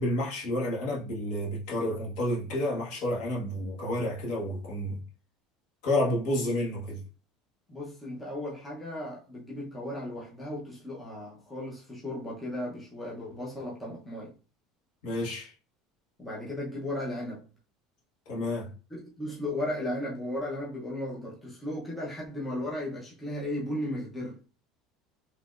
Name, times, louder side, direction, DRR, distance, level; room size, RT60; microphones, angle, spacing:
voice 1, 0.0-5.0 5.8-7.0 15.0-15.5 18.3-18.7, left 1 dB, 55° left, 1.4 m, -30 dB
voice 2, 7.7-14.4 16.2-17.5 18.9-24.4, left 1 dB, 10° left, 0.8 m, -35 dB
4.2 x 2.9 x 2.4 m
cardioid pair, 170°, 0 cm